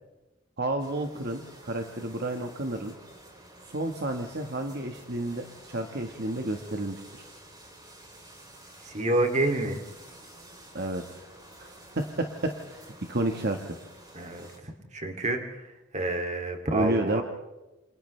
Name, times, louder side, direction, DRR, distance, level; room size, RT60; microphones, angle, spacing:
voice 1, 0.6-2.9 3.7-7.0 10.7-11.3 11.6-11.7 11.9-12.8 13.1-13.8 16.7-17.2, right 1 dB, 55° right, 4 dB, 1.6 m, -31 dB
sound 1, 0.8-14.6, right 1 dB, 20° right, 5.1 m, -50 dB
voice 2, 8.9-9.8 14.1-14.5 14.9-15.4 15.9-17.2, right 2 dB, 35° right, 4 dB, 2.8 m, -27 dB
28.5 x 28.5 x 3.4 m, 1.1 s
head